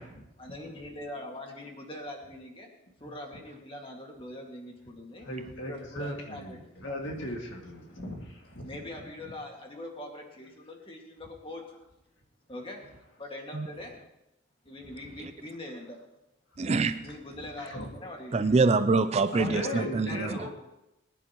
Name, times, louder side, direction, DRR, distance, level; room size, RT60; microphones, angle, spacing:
voice 1, 0.4-2.7 3.0-5.3 5.6-6.8 8.6-11.7 12.5-12.8 13.2-14.0 14.7-16.0 17.0-18.4 19.3-20.5, left 1 dB, 25° left, 2.0 m, -42 dB
voice 2, 5.2-8.7 15.1-15.2 16.6-16.7 17.6-17.9 18.5-18.6 19.3-20.5, equal, 60° left, 2.2 m, -37 dB
voice 3, 16.6-17.1 18.3-20.5, right 3 dB, 30° right, 0.4 m, -25 dB
22.5 x 10.5 x 3.0 m
head